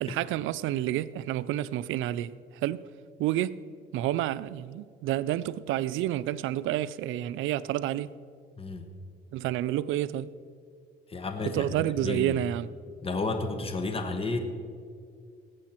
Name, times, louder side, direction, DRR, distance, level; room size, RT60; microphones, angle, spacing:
voice 1, 0.0-2.8 3.2-3.6 3.9-8.1 9.3-10.4 11.4-12.7, right 13 dB, 90° right, 0.4 m, -29 dB
voice 2, 8.6-8.9 11.1-12.4 13.0-14.4, left 3 dB, 30° left, 1.2 m, -32 dB
18.0 x 8.3 x 4.4 m
cardioid pair, 90°, 20 cm